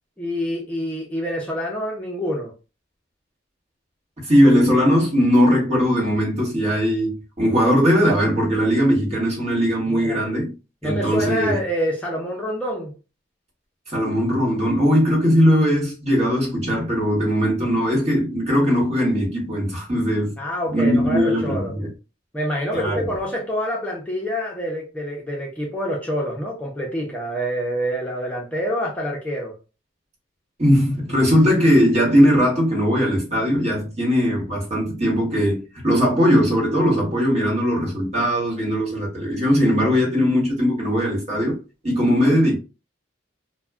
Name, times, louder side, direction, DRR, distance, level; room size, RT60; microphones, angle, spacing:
voice 1, 0.2-2.5 9.9-10.4 10.8-13.0 20.4-21.7 22.3-29.5 42.0-42.3, equal, 5° left, 0.5 m, -27 dB
voice 2, 4.2-10.5 10.8-11.6 13.9-20.3 20.7-21.9 22.7-23.1 30.6-42.6, equal, 35° right, 1.2 m, -19 dB
2.3 x 2.1 x 3.4 m
head